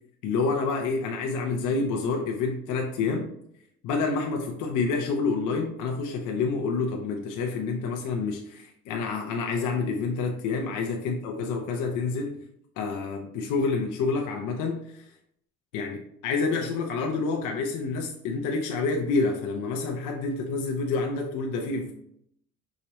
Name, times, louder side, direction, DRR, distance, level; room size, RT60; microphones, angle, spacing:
voice 1, 0.2-3.3 3.8-12.4 12.8-15.1 15.7-21.9, left 4 dB, 75° left, 2 dB, 0.7 m, -28 dB
4.9 x 3.0 x 3.0 m, 0.72 s
cardioid pair, 120°, 31 cm